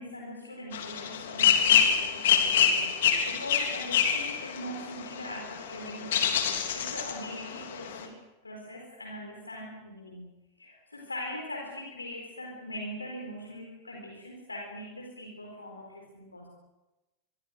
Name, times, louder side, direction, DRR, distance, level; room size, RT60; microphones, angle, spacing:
voice 1, 0.0-6.3 6.7-8.1 8.4-16.5, left 1 dB, 80° left, 1 dB, 4.4 m, -41 dB
sound 1, 0.7-8.1, left 8 dB, 60° left, 3.3 m, -26 dB
26.5 x 23.5 x 6.4 m, 1.0 s
figure-of-eight pair, 90°, 0 cm